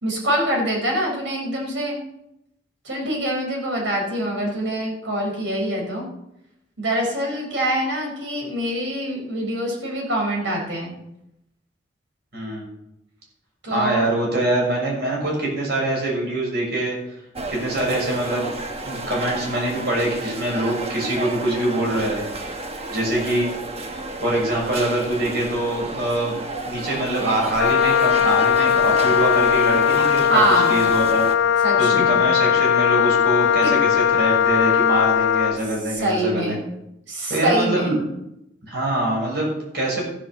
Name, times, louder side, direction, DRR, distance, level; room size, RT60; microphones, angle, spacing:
voice 1, 0.0-2.0 2.8-6.1 6.8-10.9 13.6-14.0 30.3-30.8 31.6-32.2 33.6-33.7 35.9-36.6 37.1-37.9, right 1 dB, 80° right, 0 dB, 5.0 m, -24 dB
voice 2, 12.3-12.7 13.7-17.0 17.5-18.5 18.8-22.2 22.9-23.5 24.2-26.4 26.7-30.4 30.7-31.2 31.8-36.6 37.3-38.0 38.6-40.0, right 1 dB, 60° right, -2 dB, 6.7 m, -24 dB
sound 1, 17.3-31.4, right 2 dB, 35° right, 1.2 m, -32 dB
Wind instrument woodwind instrument, 27.6-35.6, left 8 dB, 85° left, 0.5 m, -19 dB
14.5 x 7.9 x 7.1 m, 0.84 s
head